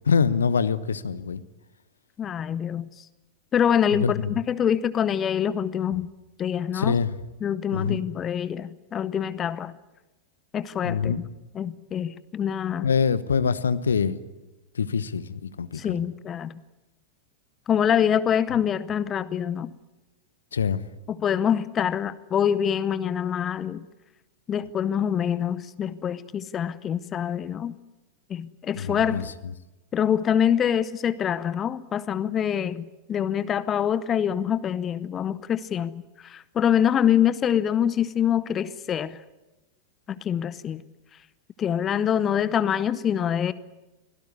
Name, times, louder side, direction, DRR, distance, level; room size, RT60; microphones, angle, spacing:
voice 1, 0.1-1.4 4.0-4.3 6.7-7.1 7.7-8.0 10.8-11.2 12.8-14.2 14.7-16.0 20.5-20.8 28.8-29.2, left 6 dB, 70° left, 1.0 m, -24 dB
voice 2, 2.2-2.9 3.5-6.1 6.4-7.0 7.4-9.8 10.5-11.2 11.5-12.9 15.7-16.6 17.7-19.7 21.1-23.8 24.5-27.7 28.3-29.3 29.9-35.9 36.2-39.2 40.2-40.8 41.6-43.5, left 9 dB, 25° left, 0.7 m, -25 dB
24.5 x 17.0 x 9.8 m
figure-of-eight pair, 90°, 0 cm